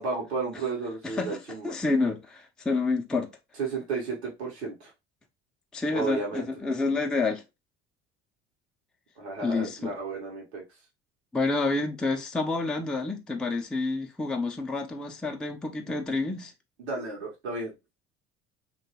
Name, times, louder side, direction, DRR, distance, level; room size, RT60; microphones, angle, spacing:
voice 1, 0.0-1.7 3.6-4.9 5.9-6.5 9.2-10.6 15.7-16.0 16.8-17.7, right 4 dB, 90° right, 0.8 m, -33 dB
voice 2, 1.0-3.3 5.7-7.4 9.4-10.0 11.3-16.5, left 3 dB, ahead, 0.4 m, -29 dB
2.9 x 2.3 x 2.7 m
hypercardioid pair, 70°, 32 cm